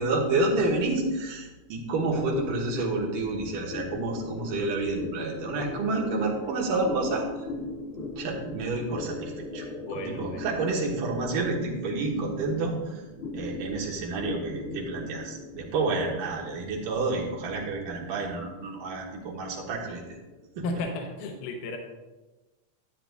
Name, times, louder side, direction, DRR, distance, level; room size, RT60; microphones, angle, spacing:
voice 1, 0.0-7.3 8.2-9.7 9.9-13.0 13.3-20.0 20.6-20.7, right 3 dB, 80° right, -2 dB, 2.9 m, -29 dB
sound 1, 1.9-20.7, left 2 dB, 40° left, 0.9 m, -40 dB
voice 2, 9.8-10.5 20.6-21.8, left 2 dB, 80° left, 3 dB, 2.3 m, -34 dB
12.0 x 9.2 x 2.4 m, 1.1 s
omnidirectional pair, 3.7 m